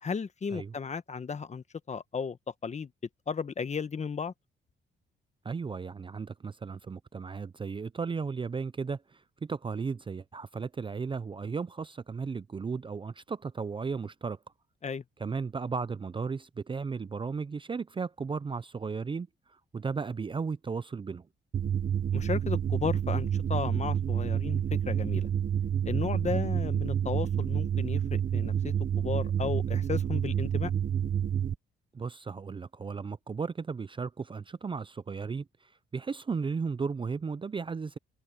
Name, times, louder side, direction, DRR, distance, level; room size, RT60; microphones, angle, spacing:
voice 1, 0.0-2.4 2.6-2.9 3.3-4.3 14.8-15.0 22.1-25.3 25.8-30.7, left 5 dB, 35° left, 1.2 m, -34 dB
voice 2, 5.4-14.4 15.2-19.3 19.7-21.3 26.3-26.4 31.9-38.0, right 5 dB, 25° right, 0.5 m, -35 dB
sound 1, 21.5-31.5, right 9 dB, 45° right, 0.9 m, -29 dB
cardioid pair, 90°, 20 cm